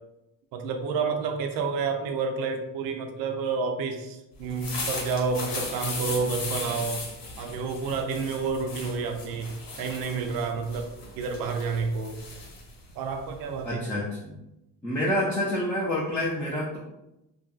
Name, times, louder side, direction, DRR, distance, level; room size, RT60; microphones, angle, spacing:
voice 1, 0.5-7.0 7.4-10.9 11.2-12.2 13.0-13.8, right 4 dB, 75° right, 5 dB, 0.5 m, -29 dB
sound 1, 4.4-13.7, left 3 dB, 80° left, 0.9 m, -37 dB
voice 2, 13.6-14.3 14.8-16.8, left 1 dB, 5° left, -7 dB, 0.4 m, -28 dB
2.7 x 2.6 x 2.3 m, 0.92 s
cardioid pair, 135°, 36 cm